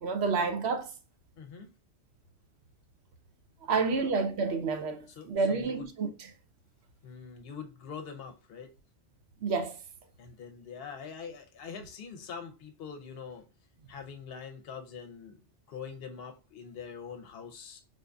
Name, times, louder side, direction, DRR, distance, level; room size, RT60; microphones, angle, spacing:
voice 1, 0.0-0.9 3.7-6.1 9.4-9.7, right 4 dB, 70° right, 0.9 m, -29 dB
voice 2, 1.4-1.7 4.0-4.1 5.1-5.9 7.0-8.7 10.2-13.5 13.9-15.4 15.7-17.8, left 6 dB, 60° left, 0.9 m, -44 dB
4.3 x 2.6 x 2.2 m
omnidirectional pair, 1.1 m